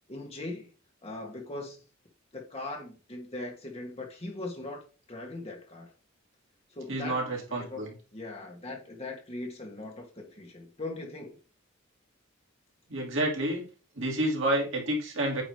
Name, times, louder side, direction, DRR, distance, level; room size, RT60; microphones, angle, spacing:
voice 1, 0.1-0.7 1.0-1.8 2.3-4.8 5.1-5.9 6.7-7.2 7.5-11.4, left 2 dB, 30° left, 1.4 m, -40 dB
voice 2, 6.9-7.9 12.9-13.6 14.0-15.4, right 1 dB, 60° right, 2.5 m, -29 dB
8.6 x 3.0 x 4.7 m
head